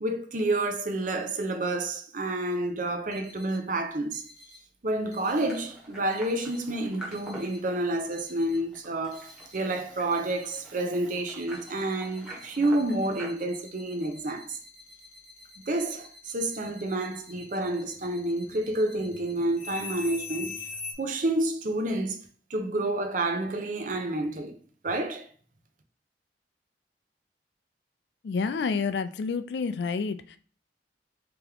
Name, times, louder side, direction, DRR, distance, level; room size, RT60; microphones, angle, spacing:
voice 1, 0.0-4.2 4.8-14.6 15.7-20.6 21.0-22.2 22.5-24.6 24.8-25.3, right 2 dB, 45° right, 0.6 m, -29 dB
sound 1, 3.1-3.6 4.1-4.6 5.1-5.6 6.1-6.6 7.1-7.6 8.1-8.6 9.1-9.6 10.1-10.6 11.1-20.9, left 4 dB, 40° left, 0.9 m, -44 dB
sound 2, 5.4-13.3, right 1 dB, 5° right, 1.0 m, -46 dB
voice 2, 28.2-30.4, left 5 dB, 70° left, 0.3 m, -29 dB
3.5 x 3.0 x 3.4 m
head